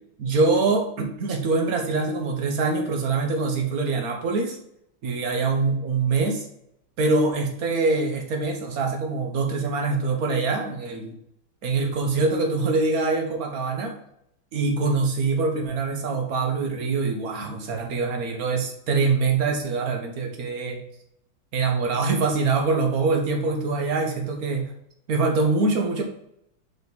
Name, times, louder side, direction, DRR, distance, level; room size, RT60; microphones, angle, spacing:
voice 1, 0.2-4.6 5.0-6.4 7.0-11.1 11.6-13.9 14.5-20.8 21.5-24.7 25.1-26.0, right 3 dB, 55° right, 3 dB, 1.3 m, -24 dB
5.3 x 4.5 x 4.0 m, 0.74 s
omnidirectional pair, 2.2 m